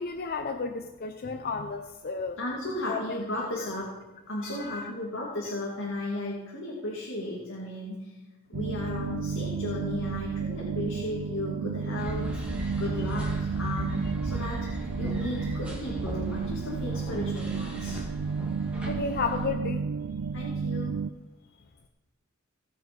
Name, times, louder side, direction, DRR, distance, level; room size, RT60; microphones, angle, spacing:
voice 1, 0.0-2.4 2.9-3.0 4.4-4.8 18.9-19.9, left 4 dB, 45° left, 6 dB, 0.6 m, -32 dB
voice 2, 2.4-4.0 4.3-8.2 8.5-12.4 12.7-18.3 20.3-21.0, left 1 dB, 65° left, -4 dB, 2.3 m, -35 dB
sound 1, 8.5-21.1, right 5 dB, 90° right, 0.4 m, -32 dB
sound 2, 12.0-19.5, equal, 5° right, 2.2 m, -38 dB
17.5 x 6.2 x 5.2 m, 1.1 s
head